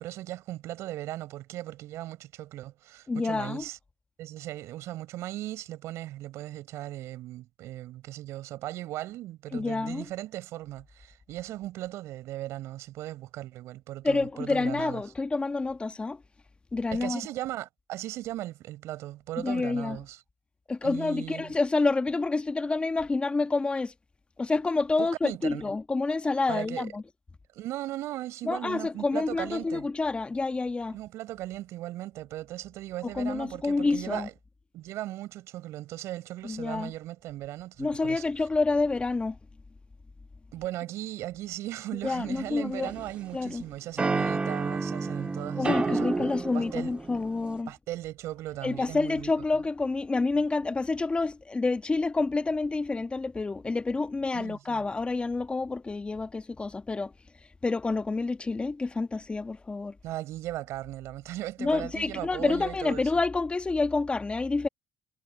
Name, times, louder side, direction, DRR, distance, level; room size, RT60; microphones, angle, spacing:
voice 1, 0.0-3.8 4.2-15.0 16.9-20.2 20.8-21.5 25.0-25.6 26.5-26.9 27.5-29.9 30.9-34.3 34.7-38.2 40.5-46.9 47.7-49.3 54.3-54.8 60.0-63.1, right 15 dB, 70° right, 6.6 m, -38 dB
voice 2, 3.1-3.6 9.5-10.0 14.0-16.2 16.7-17.2 19.4-20.0 20.7-23.9 24.4-27.0 28.5-31.0 33.0-34.3 36.4-36.9 37.8-39.4 42.0-42.9 43.3-43.6 45.5-47.7 48.6-57.1 57.6-59.9 61.6-64.7, left 3 dB, 20° left, 1.2 m, -28 dB
sound 1, 42.4-43.3 44.0-47.6, right 3 dB, 25° right, 1.9 m, -30 dB
supercardioid pair, 80°, 5 cm